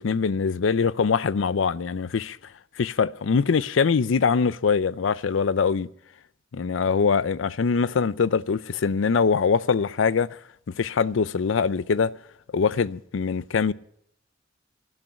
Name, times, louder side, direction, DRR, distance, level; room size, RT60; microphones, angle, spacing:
voice 1, 0.0-2.4 2.8-5.9 6.5-10.4 10.8-12.1 12.5-13.7, left 5 dB, 85° left, 0.5 m, -23 dB
12.0 x 8.6 x 9.9 m
head